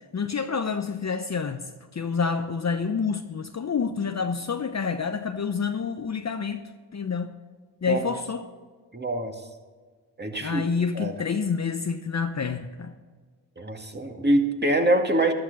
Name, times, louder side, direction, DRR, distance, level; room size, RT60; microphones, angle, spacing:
voice 1, 0.1-1.6 1.9-6.6 6.9-7.3 7.8-8.5 10.4-12.9, left 5 dB, 35° left, 0.9 m, -28 dB
voice 2, 8.9-9.3 10.2-10.7 10.9-11.1 13.6-15.3, right 1 dB, 20° right, 2.1 m, -24 dB
14.5 x 12.0 x 4.1 m
hypercardioid pair, 45°, 50 cm